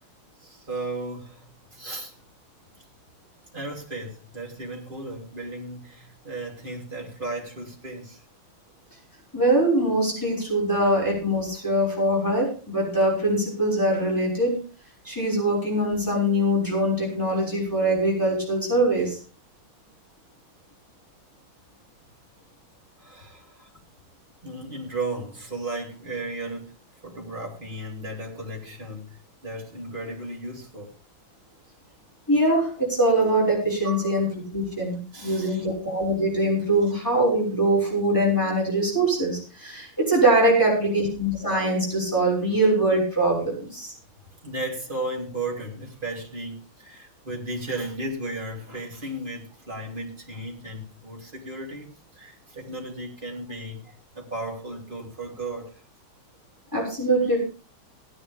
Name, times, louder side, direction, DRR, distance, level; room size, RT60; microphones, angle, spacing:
voice 1, 0.4-2.2 3.5-8.2 23.0-23.7 24.4-26.7 27.0-30.9 33.8-34.3 35.1-35.7 44.4-55.7, right 2 dB, 25° right, -1 dB, 3.9 m, -35 dB
voice 2, 9.3-14.6 15.0-19.2 32.3-43.9 56.7-57.4, right 1 dB, 10° left, -3 dB, 6.1 m, -23 dB
18.0 x 11.5 x 3.6 m, 0.35 s
omnidirectional pair, 2.2 m